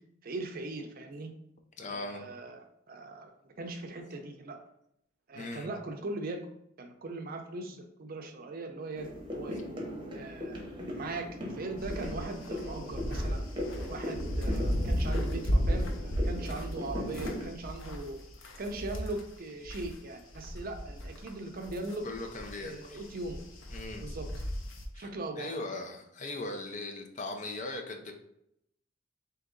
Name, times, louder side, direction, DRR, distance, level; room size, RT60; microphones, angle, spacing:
voice 1, 0.2-1.3 1.9-4.6 5.3-6.5 6.8-9.7 10.1-13.5 13.9-18.2 18.6-22.1 22.6-23.4 24.0-24.3 25.0-25.8, right 2 dB, 50° right, 4 dB, 0.5 m, -40 dB
voice 2, 1.8-2.3 5.4-5.7 22.0-23.0 23.7-24.1 24.9-25.1 25.4-28.1, left 2 dB, 40° left, 4 dB, 0.5 m, -39 dB
sound 1, 8.9-17.4, left 1 dB, 25° right, 0.9 m, -39 dB
sound 2, 11.8-20.0 20.3-24.8, equal, 80° left, 0.6 m, -34 dB
3.7 x 2.8 x 3.7 m, 0.75 s
head